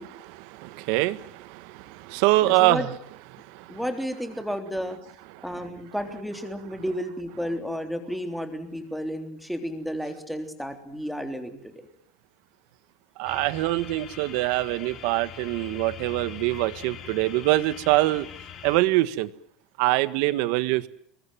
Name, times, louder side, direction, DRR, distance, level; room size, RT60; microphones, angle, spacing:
voice 1, 0.0-2.9 3.3-3.8 5.3-5.5 13.2-18.3 18.6-19.3 19.8-20.9, right 18 dB, 65° right, 15 dB, 1.6 m, -24 dB
voice 2, 2.4-2.9 3.7-5.0 5.4-11.6, equal, ahead, 6 dB, 3.5 m, -32 dB
sound 1, 13.3-18.8, left 9 dB, 35° left, 4.3 m, -42 dB
26.5 x 22.5 x 7.5 m, 0.65 s
cardioid pair, 170°, 0 cm